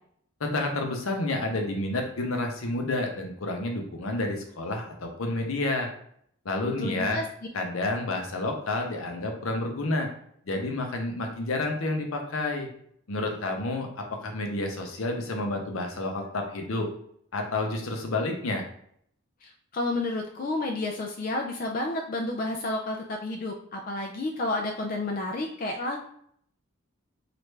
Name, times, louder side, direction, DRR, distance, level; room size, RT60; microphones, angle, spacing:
voice 1, 0.4-5.9 6.4-7.2 7.5-10.1 10.5-12.7 13.1-16.9 17.3-18.7, left 2 dB, 75° left, 3 dB, 0.7 m, -30 dB
voice 2, 6.7-7.2 19.4-26.0, left 2 dB, 40° left, 2 dB, 0.3 m, -31 dB
3.2 x 2.4 x 3.2 m, 0.67 s
head